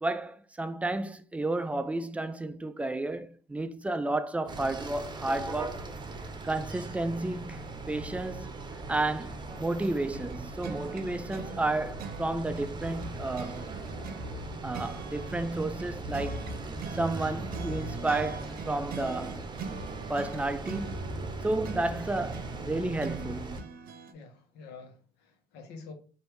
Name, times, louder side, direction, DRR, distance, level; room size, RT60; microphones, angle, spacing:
voice 1, 0.0-5.8 6.4-8.5 8.9-13.7 14.6-16.5 16.9-19.5 20.1-21.0 21.4-23.6, right 2 dB, 10° right, 0.3 m, -32 dB
sound 1, 4.5-23.6, right 2 dB, 25° right, 0.7 m, -39 dB
sound 2, 9.5-24.1, right 6 dB, 60° right, 0.7 m, -44 dB
voice 2, 24.1-25.9, left 4 dB, 80° left, 1.1 m, -48 dB
3.3 x 2.6 x 4.5 m
cardioid pair, 110°, 17 cm